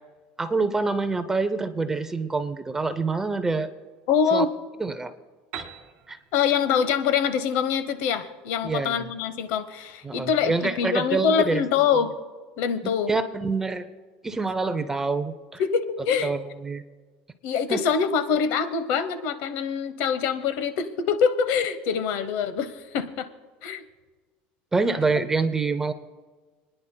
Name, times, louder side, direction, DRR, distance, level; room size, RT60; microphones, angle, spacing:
voice 1, 0.4-3.7 4.3-4.5 4.8-5.1 5.6-5.7 6.1-6.2 8.6-9.1 10.0-11.6 12.8-13.9 14.2-15.6 16.2-16.8 17.7-17.8 24.7-25.9, right 3 dB, 10° right, 11 dB, 0.5 m, -26 dB
voice 2, 4.1-4.5 6.3-12.1 12.6-13.1 15.6-16.3 17.4-23.3 23.6-23.8 25.2-25.3, left 7 dB, 65° left, 11 dB, 0.9 m, -24 dB
Piano, 5.5-9.2, right 8 dB, 45° right, 1.6 m, -44 dB
29.5 x 10.0 x 2.2 m, 1.4 s
cardioid pair, 155°, 4 cm